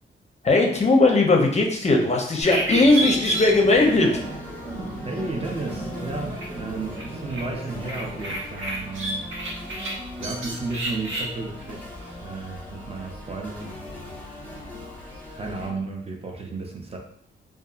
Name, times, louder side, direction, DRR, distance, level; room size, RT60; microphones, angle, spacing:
voice 1, 0.4-4.2, left 2 dB, 35° left, 1 dB, 0.5 m, -18 dB
sound 1, 2.4-15.7, right 1 dB, 75° right, 0.7 m, -34 dB
sound 2, 2.5-8.3, right 2 dB, 45° right, 0.9 m, -38 dB
sound 3, 3.3-15.7, left 1 dB, 5° left, 0.8 m, -40 dB
voice 2, 5.0-9.2 10.2-14.1 15.3-17.0, right 3 dB, 30° right, 0 dB, 0.5 m, -33 dB
2.6 x 2.3 x 2.3 m, 0.70 s
cardioid pair, 85°, 20 cm